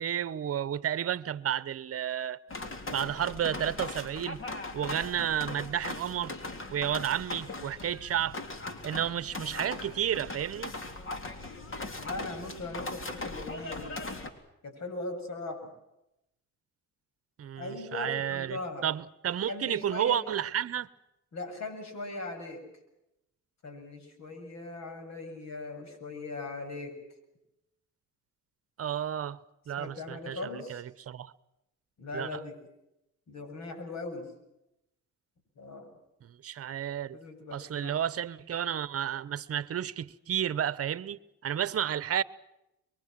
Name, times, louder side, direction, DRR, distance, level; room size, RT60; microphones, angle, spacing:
voice 1, 0.0-2.4 2.9-4.4 4.7-6.4 6.7-8.4 8.8-10.7 17.4-20.9 28.8-29.4 29.7-30.4 30.7-31.3 32.1-32.4 36.4-37.2 37.5-42.2, right 10 dB, 50° right, 1.0 m, -31 dB
sound 1, 2.5-14.3, left 2 dB, 45° left, 3.5 m, -39 dB
voice 2, 12.0-13.9 14.6-15.7 17.6-18.9 19.5-20.2 21.3-22.6 23.6-27.0 29.8-30.8 32.0-32.5 33.3-34.3 35.6-35.9 37.1-38.0, left 2 dB, 60° left, 7.5 m, -39 dB
24.5 x 22.5 x 7.6 m
cardioid pair, 90°, 30 cm